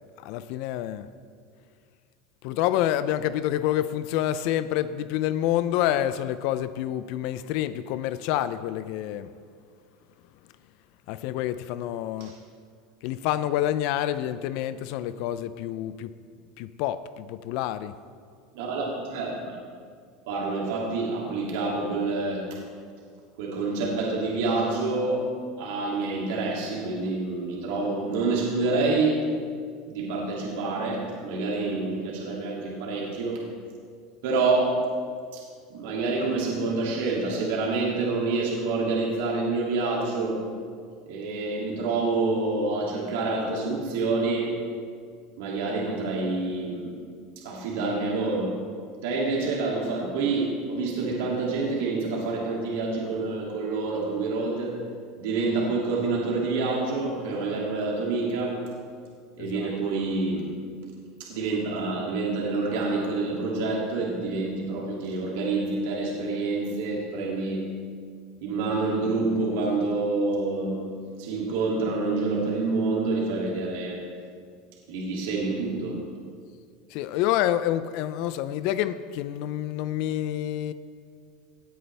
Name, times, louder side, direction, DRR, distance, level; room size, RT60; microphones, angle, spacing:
voice 1, 0.2-1.1 2.4-9.3 11.1-12.3 13.0-16.1 16.6-17.9 59.4-59.7 76.9-80.7, left 12 dB, 60° left, 13 dB, 0.4 m, -28 dB
voice 2, 18.5-19.6 20.3-22.4 23.4-25.3 25.6-29.2 29.9-33.4 34.2-34.9 35.3-35.4 35.7-40.4 41.1-44.6 45.4-47.0 47.4-48.6 49.0-54.8 55.2-58.6 59.4-60.5 61.2-67.7 68.4-70.8 71.2-74.0 74.9-76.0, right 3 dB, 80° right, -3 dB, 2.5 m, -27 dB
18.0 x 9.5 x 3.4 m, 2.1 s
supercardioid pair, 150°, 0 cm